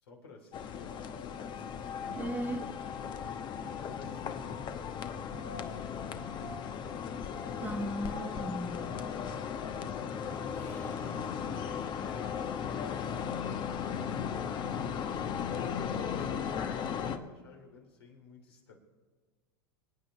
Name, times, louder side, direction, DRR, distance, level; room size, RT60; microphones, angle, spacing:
voice 1, 0.0-2.3 2.7-7.6 8.2-11.1 11.6-18.8, left 4 dB, 85° left, 1 dB, 3.2 m, -53 dB
sound 1, 0.5-17.2, left 7 dB, 35° left, 1.0 m, -36 dB
voice 2, 2.2-2.7 7.6-8.8, right 1 dB, 15° right, 5 dB, 1.3 m, -36 dB
Accelerating revving vroom, 9.3-15.7, left 1 dB, 15° left, 1.5 m, -52 dB
26.0 x 9.1 x 3.2 m, 1.5 s
hypercardioid pair, 95°, 13 cm